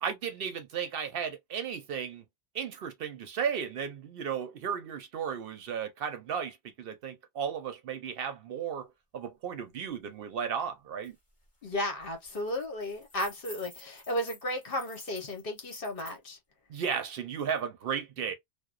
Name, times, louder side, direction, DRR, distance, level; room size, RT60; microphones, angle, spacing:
voice 1, 0.0-2.2 2.5-8.9 9.1-11.1 16.7-18.3, right 7 dB, 65° right, 0.7 m, -34 dB
sound 1, 11.0-11.1 11.5-11.7 12.0-16.2, equal, 30° left, 1.2 m, -51 dB
voice 2, 11.6-16.4, left 1 dB, 60° left, 1.1 m, -34 dB
2.8 x 2.0 x 2.3 m
omnidirectional pair, 1.1 m